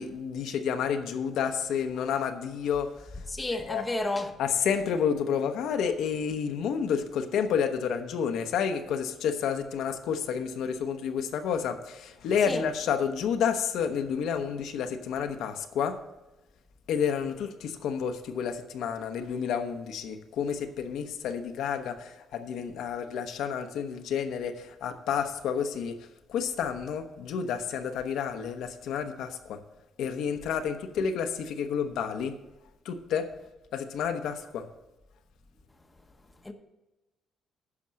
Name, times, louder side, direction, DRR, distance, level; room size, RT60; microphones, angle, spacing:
voice 1, 0.0-2.9 3.5-3.8 4.4-16.0 16.9-26.0 26.3-29.6 30.0-32.3 32.8-33.3 33.7-34.7, left 7 dB, 80° left, 0.9 m, -30 dB
voice 2, 3.3-4.3 12.5-12.6 36.4-36.5, left 2 dB, 10° left, 0.9 m, -31 dB
9.8 x 6.0 x 6.4 m
cardioid pair, 150°, 0 cm